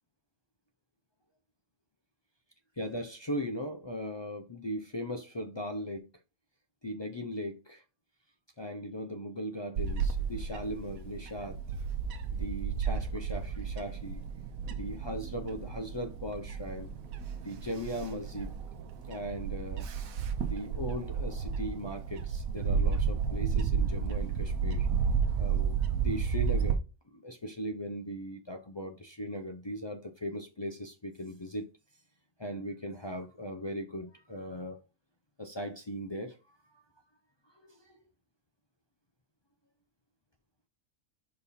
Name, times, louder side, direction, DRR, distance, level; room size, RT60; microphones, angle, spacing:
voice 1, 2.8-6.1 6.8-7.8 8.6-11.6 12.3-14.2 14.7-16.9 17.4-18.5 19.1-19.9 20.4-24.9 25.4-26.8 27.1-31.7 32.4-34.8 35.4-36.4 36.7-36.8 37.5-38.0, equal, 45° left, 0.3 m, -38 dB
Bird / Wind, 9.8-26.7, right 6 dB, 75° right, 1.2 m, -32 dB
5.3 x 4.3 x 4.2 m
omnidirectional pair, 1.5 m